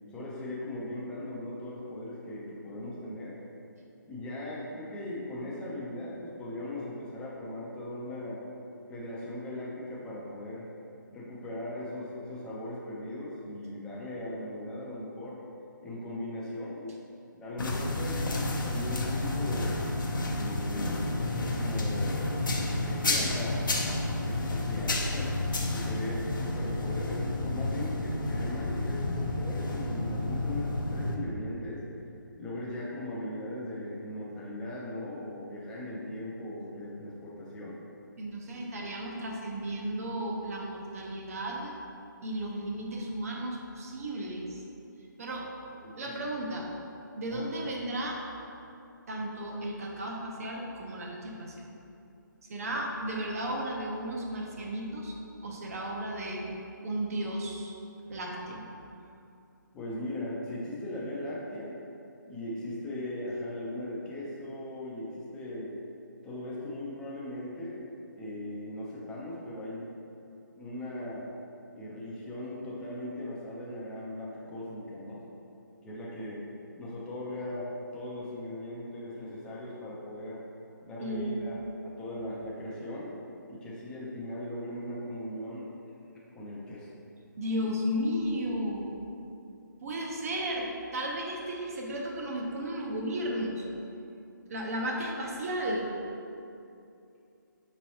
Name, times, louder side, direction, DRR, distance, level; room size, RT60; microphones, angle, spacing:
voice 1, 0.1-3.4 4.1-8.4 8.9-10.7 11.1-15.4 15.8-16.9 17.3-19.8 20.3-31.8 32.4-37.8 45.8-46.1 47.3-47.5 59.7-61.8 62.3-65.7 66.2-67.8 68.1-69.9 70.6-71.3 71.7-75.2 75.8-76.5 76.8-80.4 80.8-81.6 81.8-83.2 83.5-85.7 86.3-86.9 87.6-87.7, left 1 dB, 5° left, -6 dB, 0.4 m, -39 dB
sound 1, 17.6-31.2, left 2 dB, 70° left, 0.6 m, -30 dB
voice 2, 38.2-41.8 42.2-44.6 45.2-45.5 45.9-46.7 47.2-48.2 49.1-51.7 52.5-55.2 55.4-56.5 56.8-57.7 58.1-58.7 81.0-81.6 87.4-88.9 89.8-90.7 90.9-93.7 94.5-95.9, right 1 dB, 45° right, -1 dB, 0.7 m, -34 dB
5.2 x 3.1 x 2.8 m, 2.7 s
figure-of-eight pair, 155°, 11 cm